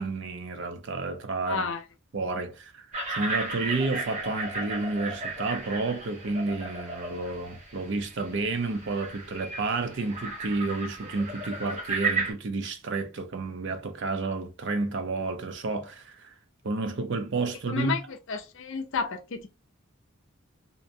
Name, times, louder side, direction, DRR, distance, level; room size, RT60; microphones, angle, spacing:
voice 1, 0.0-1.7 2.1-16.3 16.6-18.0, right 3 dB, 55° right, 0.5 m, -31 dB
voice 2, 1.5-1.8 17.7-19.5, left 4 dB, 60° left, 0.4 m, -31 dB
sound 1, 2.9-12.3, right 3 dB, 30° right, 1.2 m, -34 dB
2.7 x 2.1 x 2.6 m
head